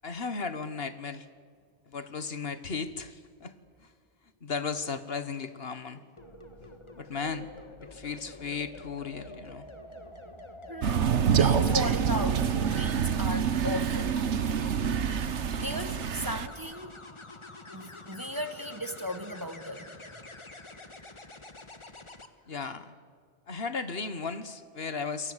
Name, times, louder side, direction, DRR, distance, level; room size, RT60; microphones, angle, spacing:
voice 1, 0.0-1.3 1.9-3.5 3.8-3.9 4.4-6.0 6.9-7.5 7.8-9.7 22.5-23.0 23.5-25.3, left 5 dB, 60° left, 12 dB, 1.5 m, -35 dB
sound 1, 6.2-22.3 24.2-24.5, left 2 dB, 25° left, 1.5 m, -47 dB
voice 2, 10.7-14.2 15.6-17.0 17.7-20.0, left 1 dB, 20° right, 8 dB, 1.6 m, -36 dB
Crow, 10.8-16.5, right 7 dB, 80° right, 1.3 m, -26 dB
28.0 x 22.5 x 8.1 m, 2.1 s
omnidirectional pair, 1.2 m